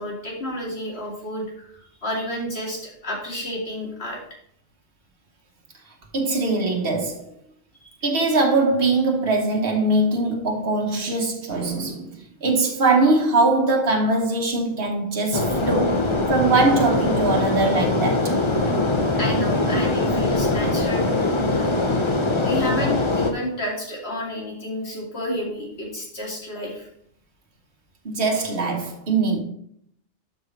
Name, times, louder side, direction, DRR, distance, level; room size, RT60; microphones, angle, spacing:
voice 1, 0.0-1.7 2.0-4.2 19.1-21.1 21.5-21.8 22.4-26.9, left 1 dB, 65° left, 2.8 m, -30 dB
voice 2, 6.1-7.3 8.0-12.1 12.4-18.3 28.0-29.4, right 2 dB, 55° right, 1.5 m, -21 dB
sound 1, 15.3-23.3, left 2 dB, 30° left, 0.9 m, -22 dB
12.5 x 5.4 x 3.3 m
omnidirectional pair, 1.2 m